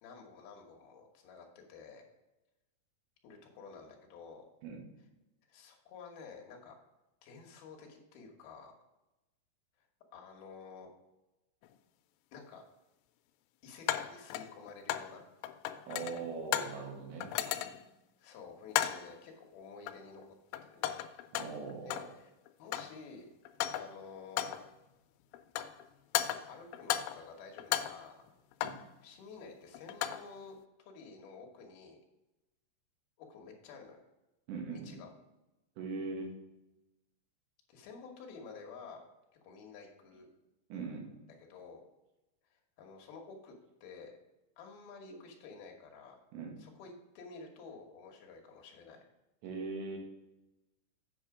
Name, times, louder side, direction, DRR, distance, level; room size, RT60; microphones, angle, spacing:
voice 1, 0.0-2.0 3.2-4.5 5.5-6.7 7.2-8.7 10.1-10.9 12.3-12.6 13.6-15.2 18.2-20.2 20.6-21.0 21.8-22.3 22.6-23.3 23.7-24.6 26.5-28.2 29.0-32.0 33.2-34.0 34.7-35.1 37.7-39.0 39.4-40.3 41.5-41.8 42.5-43.5 43.8-44.1 44.6-46.2 46.6-49.0, left 5 dB, 65° left, 1 dB, 2.7 m, -51 dB
sound 1, 11.6-11.7 13.9-15.2 15.4-16.8 17.2-17.9 18.7-19.2 19.9-20.2 20.5-22.2 22.5-23.0 23.5-24.0 24.4-24.7 25.3-25.8 26.2-27.3 27.6-28.9 29.8-30.3, left 12 dB, 85° left, 3.0 m, -36 dB
voice 2, 15.9-17.3 21.3-22.0 28.6-28.8 34.5-35.0 35.8-36.3 40.7-41.2 46.3-46.6 49.4-50.0, right 4 dB, 70° right, 0 dB, 3.8 m, -40 dB
8.3 x 6.3 x 4.8 m, 0.99 s
omnidirectional pair, 5.5 m